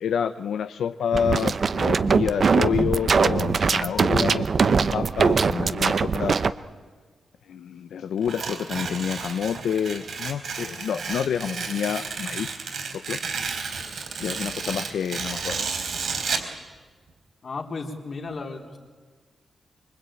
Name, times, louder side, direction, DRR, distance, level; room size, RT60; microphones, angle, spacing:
voice 1, 0.0-6.4 7.5-12.6 12.9-13.2 13.5-13.7 14.2-15.7, left 8 dB, 90° left, 10 dB, 0.8 m, -28 dB
sound 1, 1.1-6.5, right 5 dB, 45° right, 0.8 m, -21 dB
Tearing, 8.2-16.5, right 5 dB, 65° right, 4.3 m, -32 dB
voice 2, 17.4-18.8, left 3 dB, 45° left, 3 dB, 3.8 m, -34 dB
25.0 x 24.0 x 8.9 m, 1.5 s
wide cardioid pair, 130°, 0 cm